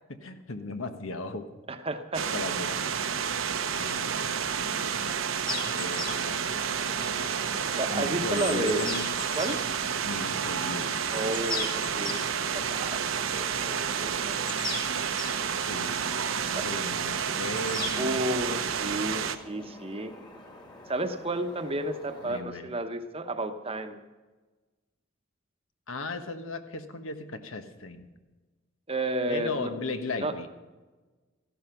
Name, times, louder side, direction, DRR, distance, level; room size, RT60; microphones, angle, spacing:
voice 1, 0.2-1.5 2.3-2.9 3.7-5.5 5.7-7.1 7.9-9.1 10.0-11.0 15.6-18.4 22.2-22.7 25.9-28.1 29.3-30.5, left 2 dB, 80° left, 8 dB, 1.3 m, -37 dB
voice 2, 1.7-2.2 7.7-8.9 9.4-9.6 11.1-14.4 16.5-16.7 18.0-20.1 20.9-24.0 28.9-29.7 30.2-30.3, right 1 dB, 30° right, 8 dB, 1.0 m, -32 dB
sound 1, 2.1-19.4, right 7 dB, 75° right, 0.9 m, -30 dB
sound 2, 5.5-22.4, left 3 dB, 20° left, 1.9 m, -41 dB
15.0 x 11.5 x 5.9 m, 1.3 s
head